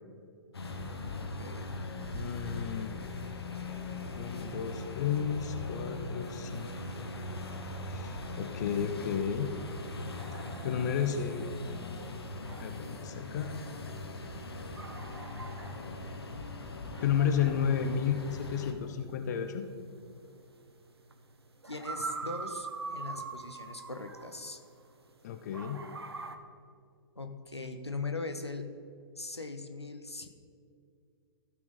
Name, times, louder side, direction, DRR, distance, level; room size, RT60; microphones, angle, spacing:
sound 1, 0.5-18.7, left 2 dB, 70° left, 1.2 m, -40 dB
voice 1, 1.1-1.7 21.6-24.6 27.2-28.7 29.2-30.3, left 3 dB, 90° left, 6 dB, 0.9 m, -40 dB
voice 2, 2.1-2.9 4.1-7.1 7.9-9.5 10.3-11.5 12.6-13.6 17.0-19.6 25.2-25.8, left 8 dB, 40° left, 7 dB, 0.7 m, -32 dB
sound 2, 10.2-25.1 25.5-26.4, right 4 dB, 75° right, 0.9 m, -44 dB
15.0 x 6.0 x 3.9 m, 2.4 s
figure-of-eight pair, 120°, 13 cm